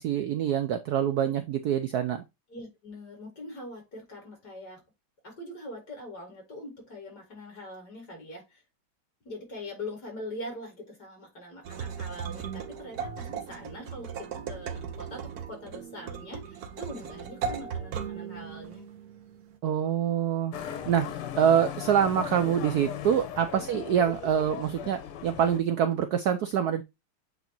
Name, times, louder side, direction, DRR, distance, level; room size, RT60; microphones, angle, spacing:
voice 1, 0.0-2.2 19.6-20.5 20.9-21.1 21.4-26.8, right 9 dB, 85° right, 0.8 m, -25 dB
voice 2, 2.5-4.8 5.2-8.6 9.2-18.8 23.7-23.8, left 1 dB, 45° left, 4.4 m, -42 dB
sound 1, 11.6-19.6, right 7 dB, 55° right, 1.3 m, -37 dB
Motorcycle, 20.5-25.6, left 9 dB, 85° left, 1.9 m, -38 dB
8.2 x 4.0 x 3.0 m
omnidirectional pair, 2.4 m